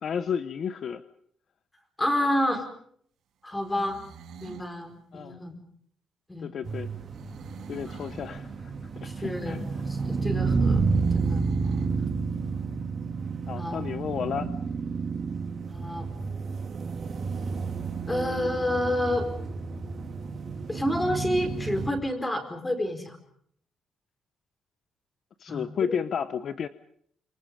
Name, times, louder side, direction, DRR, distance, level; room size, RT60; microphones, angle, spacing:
voice 1, 0.0-1.0 5.1-5.5 6.4-6.9 7.7-8.5 9.0-9.7 13.5-14.5 25.4-26.7, left 7 dB, 45° left, 11 dB, 0.9 m, -32 dB
voice 2, 2.0-2.7 3.4-4.0 4.4-5.6 6.3-6.5 7.9-8.1 9.0-9.6 9.9-10.9 11.1-11.5 13.5-14.5 15.7-16.1 18.1-19.3 20.7-23.2 25.5-26.0, left 1 dB, 10° left, 6 dB, 4.5 m, -29 dB
sound 1, 3.5-4.7 7.1-8.4 10.9-12.0, right 8 dB, 75° right, 6.3 m, -48 dB
sound 2, 6.6-21.9, right 4 dB, 35° right, 3.6 m, -30 dB
29.0 x 27.5 x 5.3 m, 0.65 s
cardioid pair, 170°, 0 cm